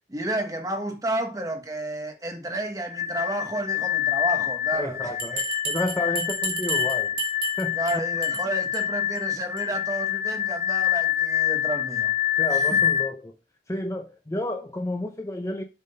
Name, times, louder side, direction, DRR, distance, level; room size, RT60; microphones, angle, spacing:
voice 1, 0.1-5.2 7.7-12.1 12.5-12.8, right 1 dB, 20° right, 1.1 m, -31 dB
sound 1, 2.9-13.1, left 10 dB, 45° left, 0.8 m, -26 dB
voice 2, 4.7-7.2 7.6-7.8 12.4-13.4 13.7-15.6, left 1 dB, 15° left, 0.6 m, -31 dB
Bell, 5.2-7.9 8.2-8.4 8.7-8.8 9.2-9.3 9.6-9.7, right 4 dB, 50° right, 2.1 m, -31 dB
7.4 x 3.8 x 5.3 m
head